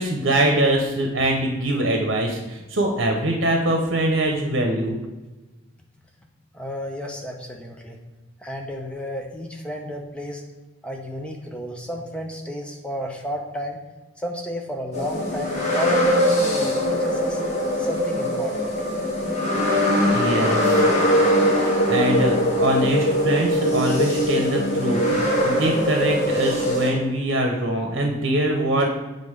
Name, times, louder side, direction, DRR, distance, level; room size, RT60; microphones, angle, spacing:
voice 1, 0.0-5.0 20.1-20.8 21.9-28.9, right 1 dB, 65° right, 2 dB, 0.9 m, -23 dB
voice 2, 6.5-8.0 8.4-10.4 10.8-13.8 14.2-17.4 17.8-18.7, equal, 5° left, 1 dB, 0.7 m, -32 dB
sound 1, 14.9-26.9, equal, 35° left, 1.8 m, -21 dB
7.7 x 4.0 x 5.0 m, 1.1 s
head